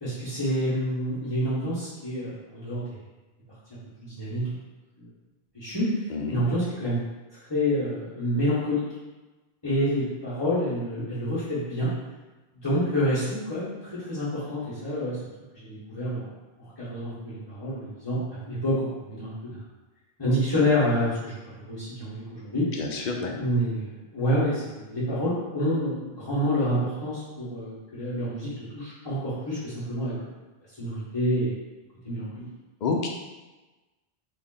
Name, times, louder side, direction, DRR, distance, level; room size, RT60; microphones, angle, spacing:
voice 1, 0.0-2.9 4.0-4.6 5.5-5.9 6.3-7.0 7.5-8.8 9.6-11.9 12.5-15.2 15.5-16.3 16.6-19.6 20.2-22.7 23.4-30.1 30.8-31.6 32.0-32.5, equal, 20° left, -14 dB, 1.2 m, -28 dB
voice 2, 6.1-6.4 22.8-23.4 32.8-33.1, left 4 dB, 55° left, 2 dB, 0.6 m, -28 dB
3.5 x 2.5 x 3.8 m, 1.2 s
omnidirectional pair, 1.0 m